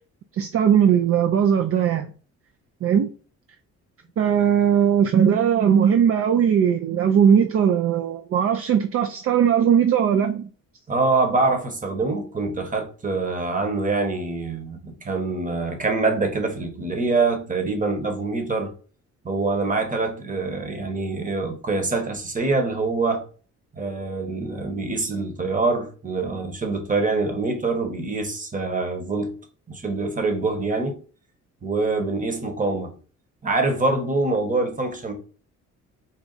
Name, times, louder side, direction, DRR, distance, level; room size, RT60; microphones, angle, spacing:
voice 1, 0.4-2.1 2.8-3.1 4.2-10.5, right 8 dB, 50° right, 0.4 m, -19 dB
voice 2, 10.9-18.7 19.2-23.2 23.7-29.3 29.7-31.0 31.6-32.9 33.4-35.1, right 3 dB, 25° right, 1.1 m, -25 dB
4.0 x 2.3 x 3.9 m
cardioid pair, 90°, 30 cm